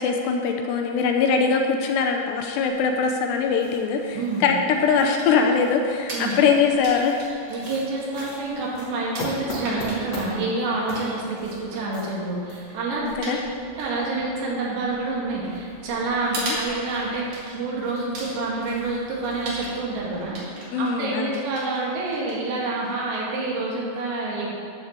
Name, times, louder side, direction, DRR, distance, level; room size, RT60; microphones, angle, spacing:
voice 1, 0.0-7.2 13.0-13.4 16.4-16.6 20.7-21.4, left 5 dB, 80° left, 3 dB, 2.8 m, -22 dB
sound 1, 2.7-20.3, left 2 dB, 50° left, 1.5 m, -43 dB
voice 2, 4.1-4.5 6.1-6.3 7.5-13.4 13.8-20.4 20.8-24.5, right 3 dB, 75° right, -4 dB, 4.3 m, -28 dB
sound 2, 4.5-23.3, right 2 dB, 50° right, 3.1 m, -40 dB
14.0 x 11.5 x 3.3 m, 2.5 s
omnidirectional pair, 5.0 m